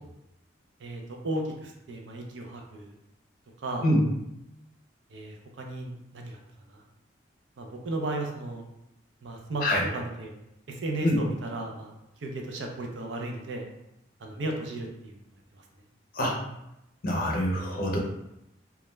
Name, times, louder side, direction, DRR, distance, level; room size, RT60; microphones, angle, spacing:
voice 1, 0.8-3.0 3.6-3.9 5.1-6.4 6.7-6.8 7.6-8.7 9.2-9.7 9.9-10.3 10.7-11.9 12.2-13.6 14.2-15.1, right 2 dB, 70° right, 2 dB, 0.5 m, -35 dB
voice 2, 17.0-18.0, left 1 dB, 50° left, -1 dB, 0.5 m, -25 dB
2.3 x 2.1 x 3.0 m, 0.87 s
head